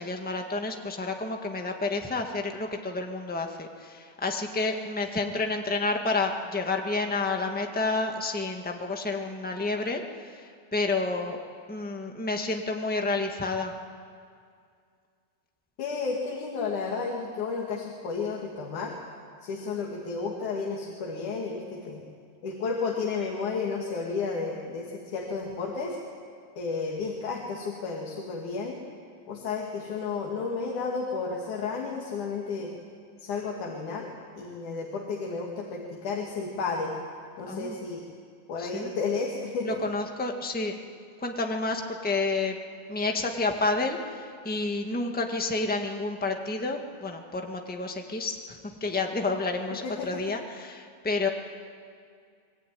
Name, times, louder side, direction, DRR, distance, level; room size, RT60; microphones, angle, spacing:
voice 1, 0.0-11.4 11.7-13.7 37.5-37.8 38.6-38.9 39.6-40.8 41.2-42.6 42.9-51.3, left 3 dB, 5° left, 3 dB, 0.6 m, -30 dB
voice 2, 15.8-19.0 19.4-22.0 22.4-26.0 26.6-28.8 29.3-32.7 33.2-34.1 34.4-36.9 37.4-38.0 38.5-40.0 49.8-50.2, left 4 dB, 85° left, -1 dB, 3.8 m, -32 dB
24.0 x 21.5 x 9.4 m, 2.2 s
omnidirectional pair, 3.4 m